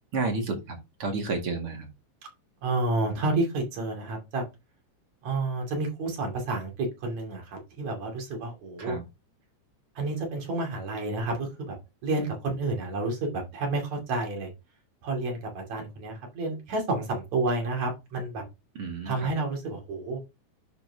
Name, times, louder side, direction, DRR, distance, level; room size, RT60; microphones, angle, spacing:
voice 1, 0.1-1.9 8.8-9.0 18.8-19.3, right 3 dB, 50° right, 2 dB, 2.9 m, -31 dB
voice 2, 2.6-4.4 5.2-9.0 10.0-11.8 12.0-14.5 15.0-18.4 19.1-20.2, right 2 dB, 65° right, 1 dB, 3.9 m, -30 dB
10.5 x 5.9 x 2.9 m, 0.24 s
omnidirectional pair, 3.5 m